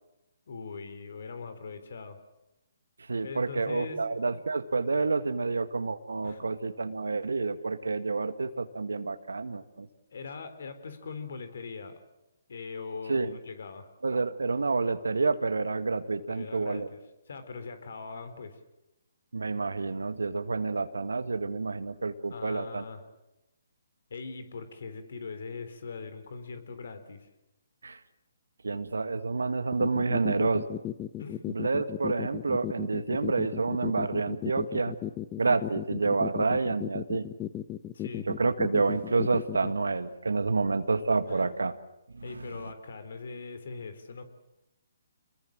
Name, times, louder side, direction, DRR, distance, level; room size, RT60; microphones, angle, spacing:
voice 1, 0.5-2.2 3.2-4.0 6.2-6.5 10.1-12.0 12.5-13.9 16.3-18.6 22.3-23.1 24.1-27.3 31.2-31.5 37.9-38.3 41.3-41.5 42.2-44.2, left 4 dB, 65° left, 10 dB, 3.8 m, -41 dB
voice 2, 3.1-9.9 13.1-13.4 14.0-16.9 19.3-22.8 27.8-28.0 28.6-30.8 31.5-35.0 35.4-37.3 38.3-41.7 42.1-42.7, right 4 dB, 85° right, 11 dB, 1.8 m, -29 dB
sound 1, 29.7-39.7, left 12 dB, 20° left, 1.0 m, -35 dB
27.5 x 21.5 x 7.6 m, 0.93 s
hypercardioid pair, 140°, 0 cm